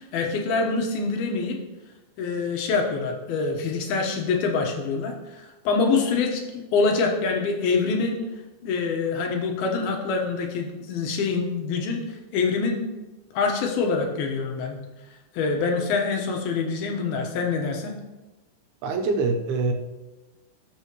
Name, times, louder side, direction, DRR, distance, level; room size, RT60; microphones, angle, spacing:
voice 1, 0.0-1.6 2.2-8.2 8.6-12.0 12.3-12.9 13.3-14.8 15.3-17.9, left 4 dB, 75° left, 2 dB, 3.1 m, -25 dB
voice 2, 18.8-19.7, right 3 dB, 85° right, 3 dB, 3.0 m, -24 dB
19.0 x 7.0 x 3.1 m, 1.1 s
omnidirectional pair, 4.4 m